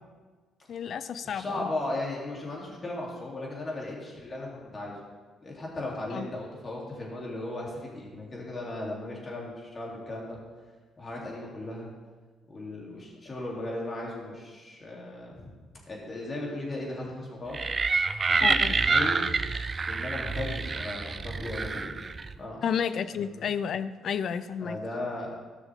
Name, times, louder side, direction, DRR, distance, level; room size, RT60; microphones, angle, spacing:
voice 1, 0.7-1.7 6.1-6.3 18.4-18.7 22.6-24.8, left 7 dB, 60° left, 14 dB, 0.5 m, -31 dB
voice 2, 1.2-4.9 5.4-10.4 11.0-11.9 12.5-15.5 15.8-17.6 18.3-19.3 19.9-22.0 22.3-22.6 23.2-23.5 24.6-25.3, left 2 dB, 35° left, -3 dB, 3.3 m, -36 dB
sound 1, 17.5-22.4, right 4 dB, 35° right, 0.5 m, -27 dB
14.5 x 6.2 x 3.7 m, 1.4 s
supercardioid pair, 60°, 0 cm